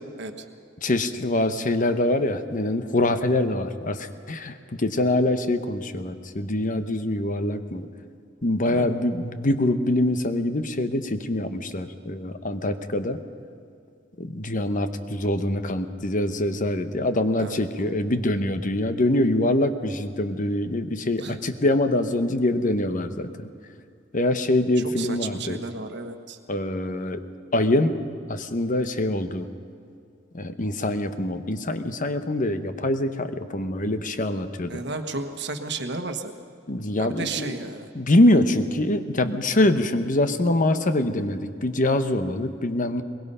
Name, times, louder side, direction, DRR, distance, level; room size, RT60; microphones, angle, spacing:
voice 1, 0.8-7.9 8.4-13.2 14.2-23.5 24.1-25.6 26.5-27.2 27.5-28.0 28.3-29.5 30.3-34.8 36.7-37.5 37.9-43.0, left 1 dB, 40° left, 9 dB, 1.0 m, -24 dB
voice 2, 25.0-26.4 34.7-36.3 37.0-37.9, right 3 dB, 60° right, 6 dB, 1.4 m, -32 dB
22.5 x 21.0 x 5.6 m, 2.4 s
head